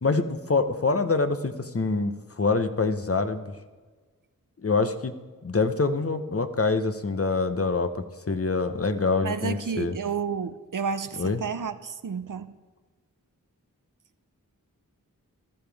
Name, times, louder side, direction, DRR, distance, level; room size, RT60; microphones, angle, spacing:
voice 1, 0.0-3.4 4.6-9.9 11.2-11.4, left 3 dB, 40° left, 9 dB, 1.0 m, -25 dB
voice 2, 9.2-12.5, right 6 dB, 65° right, 12 dB, 0.7 m, -31 dB
14.5 x 13.0 x 3.5 m, 1.4 s
cardioid pair, 45°, 35 cm